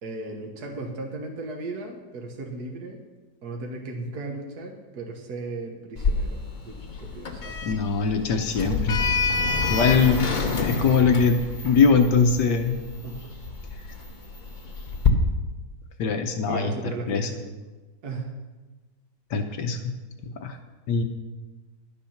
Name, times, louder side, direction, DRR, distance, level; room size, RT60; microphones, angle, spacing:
voice 1, 0.0-3.0 3.4-7.6 13.0-13.3 16.4-17.5 18.0-18.4, right 2 dB, 60° right, 1 dB, 1.8 m, -36 dB
Sliding door, 6.0-15.1, left 4 dB, 35° left, 0.8 m, -28 dB
voice 2, 7.6-9.0 9.7-12.8 16.0-16.7 17.1-17.3 19.3-19.9 20.4-20.6 20.9-21.0, left 5 dB, 70° left, 6 dB, 1.4 m, -22 dB
12.0 x 9.3 x 5.8 m, 1.2 s
omnidirectional pair, 2.0 m